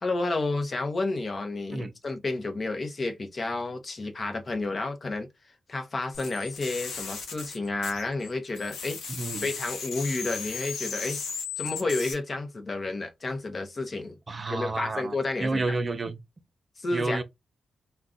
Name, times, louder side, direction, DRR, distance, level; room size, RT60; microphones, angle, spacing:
voice 1, 0.0-5.3 5.7-9.0 9.4-11.2 11.6-14.2 14.5-15.7 16.8-17.2, left 2 dB, 40° left, 0.7 m, -31 dB
sound 1, 6.1-8.3 8.6-12.1, left 5 dB, 90° left, 0.8 m, -36 dB
voice 2, 9.1-9.5 14.3-16.2 16.9-17.2, right 3 dB, 40° right, 0.5 m, -30 dB
2.4 x 2.2 x 3.7 m
cardioid pair, 75°, 0 cm